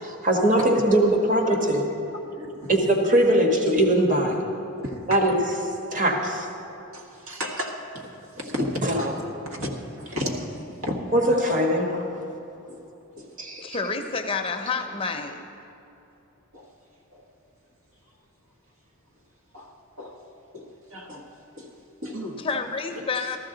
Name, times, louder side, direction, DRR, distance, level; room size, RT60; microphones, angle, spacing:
voice 1, 0.0-1.9 2.7-4.4 5.1-5.4 5.9-6.5 8.8-9.1 11.1-12.1 13.4-13.8, right 1 dB, 40° right, 1 dB, 1.4 m, -21 dB
voice 2, 2.3-2.7 4.8-5.2 6.9-9.1 9.4-9.7 10.0-10.5 10.8-11.0 12.7-12.8 13.2-13.3 16.5-16.7 17.1-17.2 19.5-20.2 20.5-21.3 21.6-21.7 22.0-22.4 22.9-23.4, equal, 80° right, 0 dB, 1.7 m, -34 dB
voice 3, 13.6-15.4 22.4-23.4, left 4 dB, 25° left, 5 dB, 0.6 m, -29 dB
14.0 x 13.5 x 3.9 m, 2.9 s
head